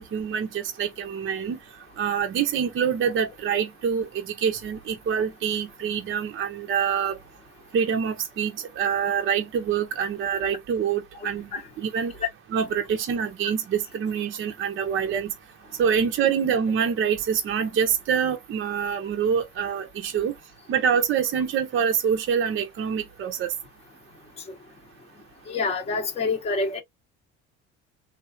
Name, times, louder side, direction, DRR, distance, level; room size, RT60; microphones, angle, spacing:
voice 1, 0.0-1.6 2.0-7.2 7.7-11.5 11.8-12.1 12.5-15.3 15.8-20.3 20.7-23.5, right 7 dB, 40° right, 0.6 m, -25 dB
voice 2, 25.5-26.8, left 3 dB, 20° left, 0.8 m, -26 dB
3.1 x 2.3 x 2.4 m
supercardioid pair, 85°, 32 cm